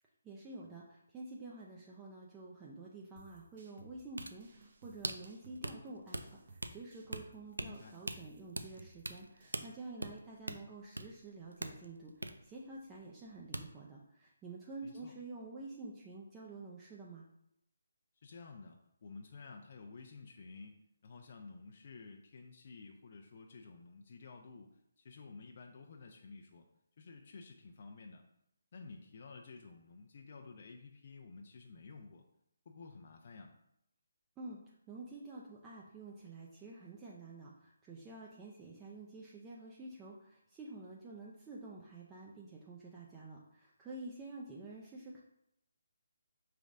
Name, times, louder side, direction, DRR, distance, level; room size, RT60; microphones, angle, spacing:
voice 1, 0.2-17.3 34.4-34.6 34.9-45.2, right 2 dB, 15° right, -4 dB, 0.5 m, -49 dB
sound 1, 3.2-9.7, right 3 dB, 45° right, 0.8 m, -61 dB
sound 2, 3.9-13.3 13.5-13.7, right 1 dB, 90° right, 0.4 m, -43 dB
voice 2, 7.6-8.0 14.8-15.1 18.2-26.7 27.0-28.2 28.7-32.2 32.7-33.5, left 4 dB, 45° left, 2 dB, 0.4 m, -52 dB
5.0 x 3.3 x 2.5 m, 0.77 s
figure-of-eight pair, 150°, 0 cm